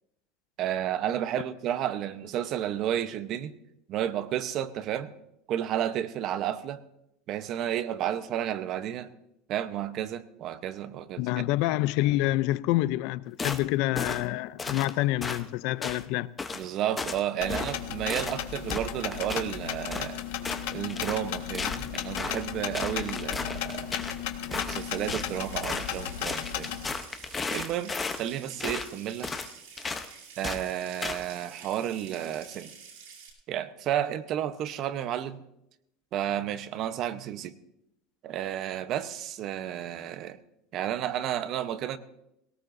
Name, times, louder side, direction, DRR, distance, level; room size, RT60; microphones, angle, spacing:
voice 1, 0.6-3.5 3.9-5.1 5.5-6.8 7.3-9.1 9.5-11.4 16.5-20.2 20.7-23.9 24.5-26.8 27.5-29.3 30.4-32.7 33.5-35.4 36.1-37.5 38.2-40.4 40.7-42.0, right 11 dB, 40° right, 0.8 m, -32 dB
voice 2, 11.2-16.3, left 16 dB, 60° left, 0.4 m, -27 dB
sound 1, 13.4-13.6 14.0-14.2 14.6-14.9 15.2-15.4 15.8-16.0 16.4-16.6 17.0-17.2 17.5-17.8 18.1-18.4 18.7-19.5 19.9-20.1 20.4-21.2 21.5-22.5 22.7-24.2 24.5-25.3 25.6-26.0 26.2-28.2 28.6-28.9 29.2-29.5 29.8-30.1 30.4-30.6 31.0-31.2, left 4 dB, 15° left, 0.8 m, -34 dB
sound 2, 17.4-26.9, left 11 dB, 75° left, 1.4 m, -35 dB
Water tap faucet / Sink (filling or washing) / Trickle dribble, 24.7-33.3, right 6 dB, 75° right, 7.9 m, -49 dB
21.0 x 18.0 x 2.6 m
supercardioid pair, 155°, 0 cm